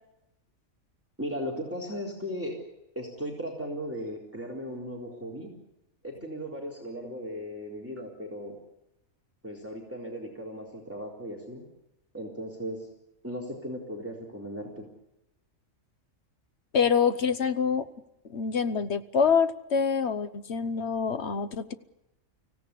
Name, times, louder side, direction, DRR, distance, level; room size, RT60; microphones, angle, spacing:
voice 1, 1.2-2.6 3.0-5.5 6.0-8.6 9.4-11.6 12.1-12.8 13.2-14.9, equal, 10° right, -1 dB, 3.9 m, -37 dB
voice 2, 16.7-17.9 18.3-21.7, left 6 dB, 55° left, 11 dB, 1.3 m, -26 dB
24.5 x 16.5 x 8.5 m, 0.89 s
omnidirectional pair, 1.4 m